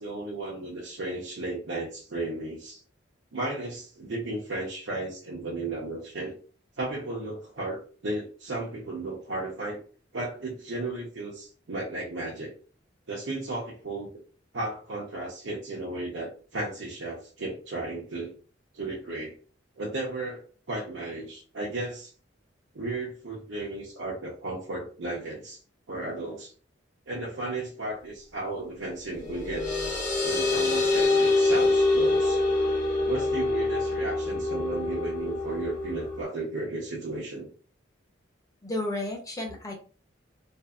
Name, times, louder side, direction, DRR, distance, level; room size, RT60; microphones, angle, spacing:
voice 1, 0.0-2.8 3.3-6.4 6.8-9.8 10.1-12.5 13.1-14.1 14.5-18.3 18.7-19.4 19.8-22.1 22.7-25.6 25.9-26.5 27.1-29.7 30.2-32.4 33.1-37.5, right 2 dB, 80° right, -5 dB, 0.7 m, -34 dB
sound 1, 29.1-36.2, left 2 dB, 40° left, 0.9 m, -25 dB
voice 2, 38.6-39.7, left 1 dB, 20° left, 0 dB, 0.6 m, -32 dB
2.6 x 2.4 x 2.3 m, 0.40 s
head